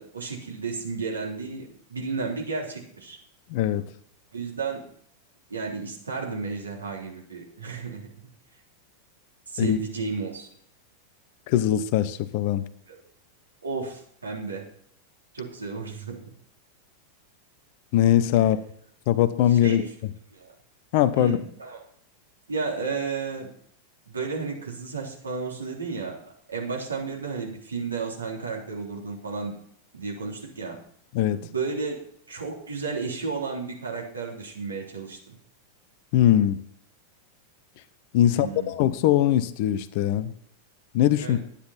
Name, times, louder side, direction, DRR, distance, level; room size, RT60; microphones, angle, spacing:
voice 1, 0.0-3.2 4.3-4.9 5.5-8.0 9.5-10.5 12.9-13.0 13.6-14.6 15.3-16.2 18.4-18.5 19.5-19.9 20.3-20.5 21.2-21.8 22.5-23.5 24.1-26.2 26.5-29.5 29.9-30.8 31.4-32.0 32.3-35.3 38.2-38.7 41.2-41.4, right 4 dB, 75° right, -2 dB, 3.5 m, -32 dB
voice 2, 3.5-3.8 9.6-9.8 11.5-12.6 17.9-18.6 19.1-19.8 20.9-21.4 31.1-31.4 36.1-36.6 38.1-40.3 40.9-41.4, left 12 dB, 45° left, 13 dB, 0.8 m, -21 dB
11.5 x 9.9 x 4.2 m, 0.65 s
figure-of-eight pair, 90°, 0 cm